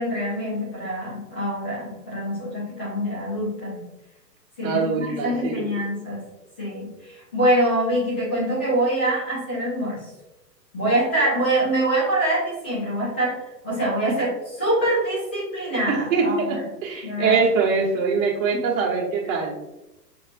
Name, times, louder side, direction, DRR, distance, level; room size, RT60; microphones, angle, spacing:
voice 1, 0.0-3.8 4.6-6.2 6.6-6.9 7.3-10.0 10.7-13.3 13.6-14.3 14.6-16.6 17.0-17.4 18.5-18.6, right 1 dB, 10° left, -9 dB, 0.3 m, -24 dB
voice 2, 4.6-5.8 15.9-19.6, right 4 dB, 50° right, -3 dB, 1.4 m, -23 dB
5.9 x 2.9 x 2.5 m, 0.97 s
figure-of-eight pair, 115°, 50 cm